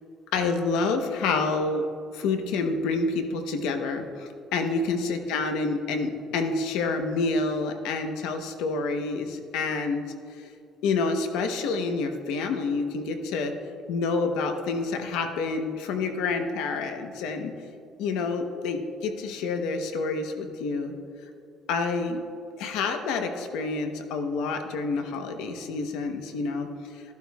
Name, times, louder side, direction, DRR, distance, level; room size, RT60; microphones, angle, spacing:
voice 1, 0.3-1.8 2.1-10.0 10.3-10.5 10.8-13.5 13.9-17.5 18.0-20.9 21.7-22.2 22.6-27.0, left 4 dB, 85° left, 6 dB, 0.9 m, -28 dB
13.5 x 11.5 x 2.4 m, 2.4 s
cardioid pair, 130°, 0 cm